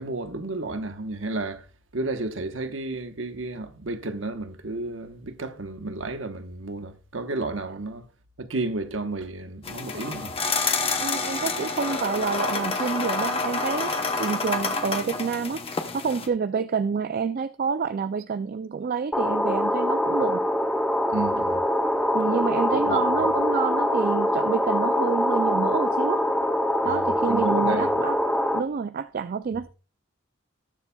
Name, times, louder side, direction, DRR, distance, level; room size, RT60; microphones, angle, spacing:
voice 1, 0.0-1.6 1.9-8.0 8.4-10.3 21.1-21.6 22.7-23.0 26.8-27.9, right 2 dB, 70° right, 1.1 m, -32 dB
sound 1, 9.6-16.3, left 3 dB, 30° left, 1.0 m, -28 dB
voice 2, 11.0-15.6 15.9-20.4 22.1-26.3 26.8-28.2 28.5-29.7, right 5 dB, 45° right, 0.4 m, -28 dB
sound 2, 19.1-28.6, left 1 dB, 5° left, 0.6 m, -24 dB
19.5 x 7.0 x 2.3 m
head